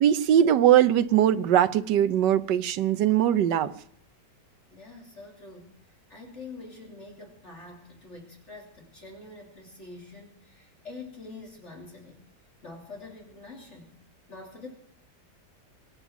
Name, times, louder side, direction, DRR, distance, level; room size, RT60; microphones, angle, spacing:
voice 1, 0.0-3.7, right 10 dB, 90° right, 12 dB, 1.4 m, -21 dB
voice 2, 4.7-12.2 12.6-13.9 14.3-14.7, left 3 dB, 40° left, 1 dB, 3.4 m, -45 dB
23.5 x 9.2 x 6.0 m, 0.68 s
omnidirectional pair, 1.8 m